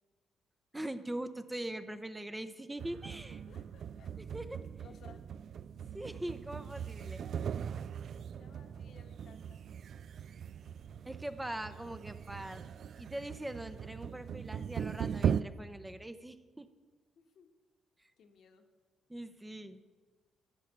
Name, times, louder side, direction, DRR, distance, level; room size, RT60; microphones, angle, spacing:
voice 1, 0.7-3.4 4.3-4.6 5.9-7.2 11.0-12.6 13.0-16.7 18.0-18.1 19.1-19.8, right 1 dB, 10° right, 10 dB, 0.6 m, -42 dB
sound 1, 2.8-15.4, right 8 dB, 60° right, 0.3 m, -39 dB
voice 2, 3.5-4.5 4.8-5.2 8.4-9.6 17.2-17.5 18.2-18.6, left 6 dB, 65° left, 5 dB, 1.1 m, -60 dB
12.5 x 5.0 x 8.7 m, 1.4 s
cardioid pair, 90°, 0 cm